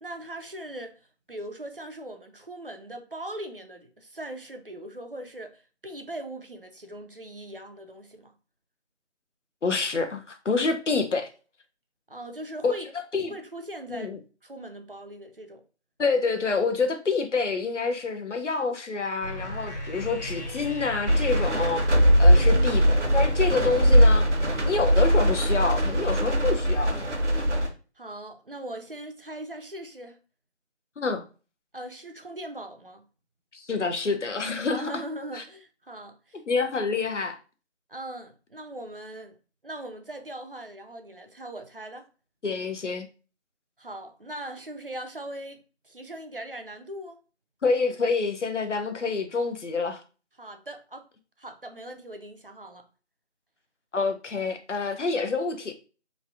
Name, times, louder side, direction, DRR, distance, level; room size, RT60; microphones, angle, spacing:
voice 1, 0.0-1.0 1.3-8.3 12.1-12.9 13.3-14.1 14.4-15.6 22.3-22.9 28.0-30.2 31.7-33.1 34.7-36.4 37.9-39.4 39.6-42.1 43.8-45.6 45.8-47.2 50.4-51.1 51.4-52.9, right 1 dB, 50° right, 0.4 m, -40 dB
voice 2, 9.6-11.3 12.6-12.7 13.1-13.3 13.9-14.2 16.0-21.9 22.2-24.3 24.6-27.0 31.0-31.2 33.5-34.9 35.3-35.4 36.5-37.4 42.4-43.1 47.6-50.0 53.9-55.7, left 4 dB, 90° left, 0.7 m, -27 dB
sound 1, 19.2-24.8, left 1 dB, 40° left, 0.7 m, -36 dB
sound 2, 21.1-27.7, equal, 80° right, 0.9 m, -20 dB
3.1 x 2.5 x 2.4 m
figure-of-eight pair, 170°, 35 cm